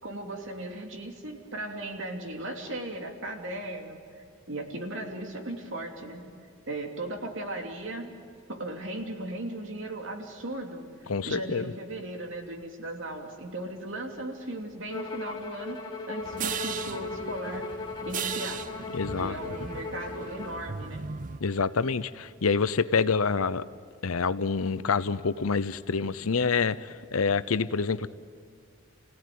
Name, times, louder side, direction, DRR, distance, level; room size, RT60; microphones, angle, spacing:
voice 1, 0.0-6.3 6.7-8.1 8.5-10.8 11.2-15.8 16.1-17.7 18.0-18.7 19.2-21.1, right 1 dB, 65° right, 2 dB, 2.9 m, -37 dB
voice 2, 11.1-11.7 18.9-19.4 21.4-23.6 24.0-28.1, left 5 dB, 90° left, 15 dB, 0.8 m, -27 dB
Bowed string instrument, 14.9-20.6, left 4 dB, 20° left, 1.9 m, -38 dB
sound 1, 16.2-21.4, right 6 dB, 40° right, 0.6 m, -37 dB
29.5 x 17.0 x 9.4 m, 2.3 s
head